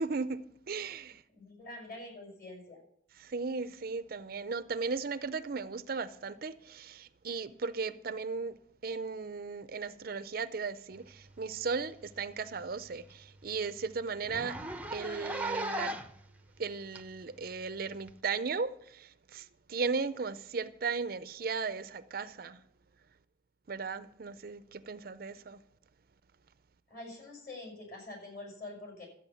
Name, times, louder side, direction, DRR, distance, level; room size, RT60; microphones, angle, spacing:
voice 1, 0.0-1.2 3.2-8.6 8.8-14.6 14.9-16.0 16.6-22.6 23.7-25.6, right 4 dB, 50° right, 0.5 m, -36 dB
voice 2, 1.3-2.8 26.9-29.1, left 2 dB, 45° left, 6.0 m, -46 dB
Zipper (clothing), 11.6-11.8 12.2-12.3 12.6-12.7 13.1-13.2 13.4-13.6 14.2-16.2 17.0-17.1 18.1-18.2, right 1 dB, 10° right, 0.6 m, -37 dB
12.5 x 8.6 x 7.0 m
head